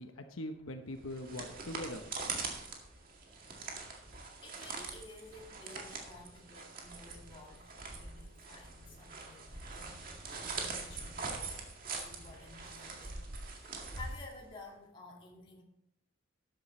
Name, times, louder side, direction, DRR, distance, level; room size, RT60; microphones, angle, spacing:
voice 1, 0.0-2.1, left 1 dB, 85° left, 6 dB, 1.0 m, -42 dB
sound 1, 1.0-14.7, right 4 dB, 45° right, 2.1 m, -43 dB
voice 2, 4.1-11.6 12.0-13.2 13.5-15.6, left 2 dB, 25° left, -1 dB, 2.1 m, -53 dB
12.5 x 10.5 x 3.2 m, 0.75 s
head